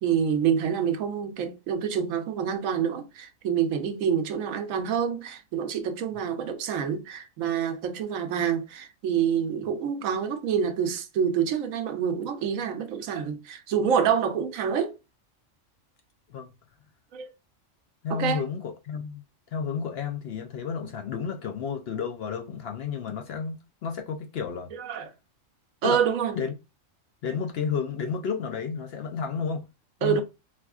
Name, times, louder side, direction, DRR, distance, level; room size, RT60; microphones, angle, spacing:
voice 1, 0.0-14.9 17.1-17.3 18.1-18.5 24.7-25.1 25.8-26.4 30.0-30.2, right 8 dB, 85° right, 1.1 m, -27 dB
voice 2, 18.0-19.2 19.5-24.7 25.8-26.0 26.4-26.5 27.2-29.7 30.0-30.2, left 6 dB, 65° left, 0.7 m, -31 dB
4.2 x 2.8 x 2.3 m
omnidirectional pair, 1.4 m